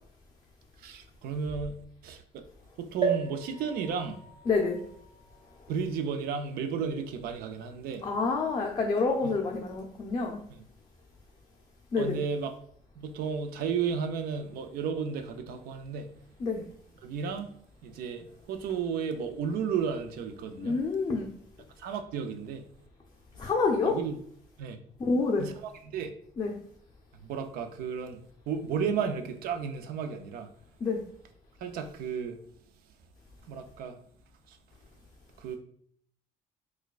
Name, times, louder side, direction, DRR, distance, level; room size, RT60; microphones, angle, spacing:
voice 1, 0.8-2.4 2.8-4.2 5.7-8.1 9.2-9.3 10.5-10.6 12.0-12.5 13.0-16.1 17.0-17.5 17.8-20.8 21.8-22.7 23.8-24.1 24.6-24.8 25.4-25.5 25.9-26.1 27.2-30.5 31.6-32.4 33.5-34.0 34.5-34.6 35.4-35.6, right 6 dB, 80° right, 0.5 m, -33 dB
sound 1, 3.0-6.7 7.3-7.4 7.6-7.7, right 6 dB, 35° right, 0.9 m, -36 dB
voice 2, 4.5-4.8 8.0-10.4 11.9-12.2 16.4-16.6 20.6-21.3 23.4-23.9 25.0-25.5 26.4-26.5 30.8-31.0, left 4 dB, 30° left, 0.4 m, -27 dB
4.3 x 2.2 x 2.4 m
cardioid pair, 115°, 15 cm